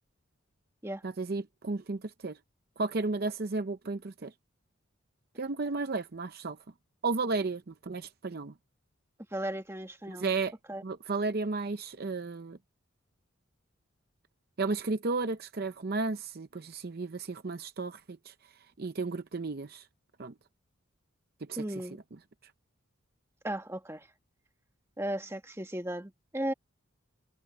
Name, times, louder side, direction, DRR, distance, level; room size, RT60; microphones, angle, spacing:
voice 1, 1.0-2.4 2.8-4.3 5.4-6.6 7.0-8.5 10.1-10.5 10.8-12.6 14.6-18.3 18.8-19.9 20.2-20.3 21.5-21.6, right 3 dB, 50° right, 0.6 m, -33 dB
voice 2, 9.3-10.3 10.7-10.8 21.6-22.0 23.4-24.1 25.0-26.5, right 1 dB, 15° right, 1.5 m, -35 dB
head